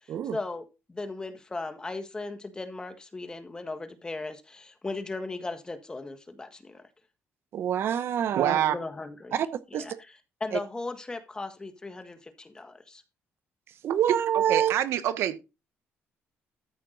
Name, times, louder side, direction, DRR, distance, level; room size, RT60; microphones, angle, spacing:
voice 1, 0.0-6.8 8.5-9.4 9.7-13.0, left 3 dB, 15° left, 1.5 m, -37 dB
voice 2, 7.5-8.5 9.3-9.5 9.7-9.8 13.8-14.7, right 9 dB, 60° right, 0.8 m, -26 dB
voice 3, 8.3-8.7 14.5-15.4, right 11 dB, 80° right, 1.2 m, -26 dB
13.5 x 5.8 x 3.9 m
cardioid pair, 125°, 5 cm